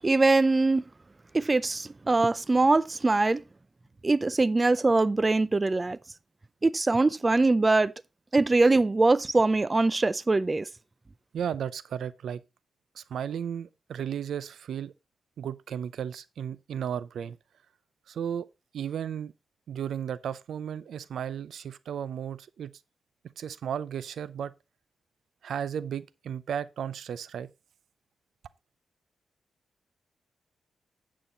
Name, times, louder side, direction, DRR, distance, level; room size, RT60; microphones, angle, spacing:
voice 1, 0.0-0.8 1.3-3.4 4.0-6.0 6.6-7.9 8.3-10.7, right 3 dB, 25° right, 0.4 m, -23 dB
voice 2, 11.3-12.4 12.9-14.9 15.4-17.4 18.1-18.5 18.7-19.3 19.7-22.7 23.4-24.5 25.4-27.5, right 8 dB, 85° right, 0.5 m, -34 dB
8.7 x 7.5 x 3.9 m
cardioid pair, 95°, 0 cm